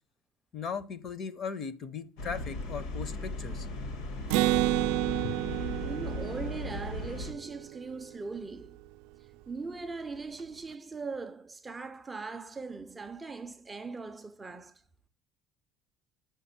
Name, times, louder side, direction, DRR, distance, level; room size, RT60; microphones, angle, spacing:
voice 1, 0.5-3.7 5.2-5.4, left 6 dB, 30° left, 0.7 m, -38 dB
sound 1, 2.2-7.3, left 2 dB, 70° left, 1.6 m, -37 dB
Acoustic guitar, 4.3-8.0, right 17 dB, 80° right, 0.4 m, -30 dB
voice 2, 5.8-8.8 9.5-14.8, right 4 dB, 10° right, 0.4 m, -40 dB
6.7 x 5.7 x 7.1 m
cardioid pair, 175°, 0 cm